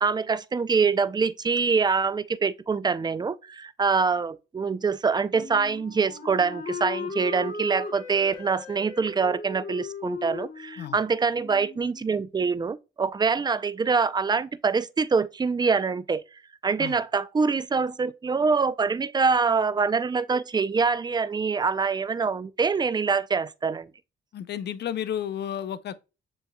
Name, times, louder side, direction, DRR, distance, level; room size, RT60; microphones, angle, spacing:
voice 1, 0.0-16.2 16.6-23.9, right 5 dB, 20° right, 0.5 m, -25 dB
Wind instrument woodwind instrument, 5.3-12.1, left 4 dB, 40° left, 1.9 m, -38 dB
voice 2, 24.3-25.9, left 10 dB, 60° left, 0.6 m, -32 dB
7.0 x 3.1 x 2.2 m
cardioid pair, 90°, 20 cm